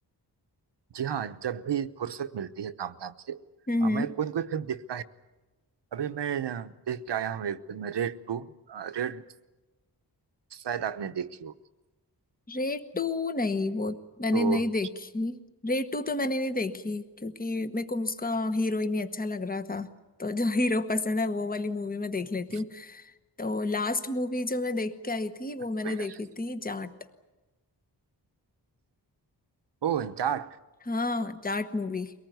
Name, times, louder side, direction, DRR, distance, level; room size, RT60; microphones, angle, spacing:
voice 1, 0.9-3.4 3.8-5.0 5.9-9.2 10.5-11.5 14.3-14.7 22.5-22.6 25.8-26.2 29.8-30.5, right 8 dB, 80° right, 11 dB, 1.0 m, -32 dB
voice 2, 3.7-4.1 12.5-19.9 20.2-23.1 23.4-26.9 30.9-32.1, left 2 dB, 20° left, 10 dB, 1.1 m, -30 dB
23.5 x 19.0 x 9.3 m, 1.1 s
wide cardioid pair, 160°, 41 cm